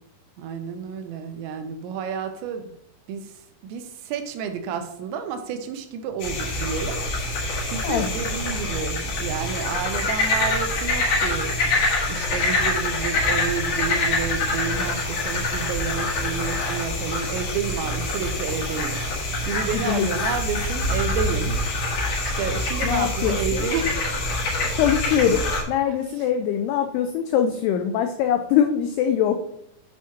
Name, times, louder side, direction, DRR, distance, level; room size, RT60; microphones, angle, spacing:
voice 1, 0.4-2.7 3.1-11.6 12.1-21.6 22.2-24.0 25.9-26.0, right 6 dB, 85° right, 7 dB, 3.0 m, -30 dB
sound 1, 6.2-25.6, left 2 dB, 65° left, 1.6 m, -25 dB
voice 2, 19.6-20.1 22.8-23.7 24.7-29.3, left 9 dB, 90° left, 6 dB, 2.3 m, -23 dB
8.5 x 3.0 x 5.7 m, 0.77 s
omnidirectional pair, 5.2 m